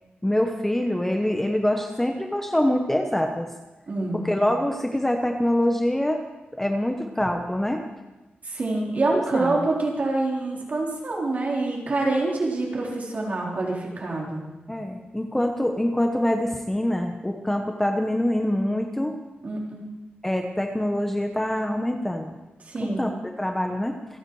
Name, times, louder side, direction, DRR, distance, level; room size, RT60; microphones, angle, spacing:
voice 1, 0.2-3.5 4.2-6.2 6.6-7.8 9.1-9.7 14.7-19.2 20.2-22.4 22.8-24.0, left 1 dB, 10° left, 4 dB, 1.1 m, -25 dB
voice 2, 3.9-4.3 8.4-14.4 19.4-19.8 22.6-23.0, right 2 dB, 45° right, -2 dB, 3.9 m, -26 dB
27.5 x 10.0 x 4.8 m, 1.1 s
wide cardioid pair, 165°, 4 cm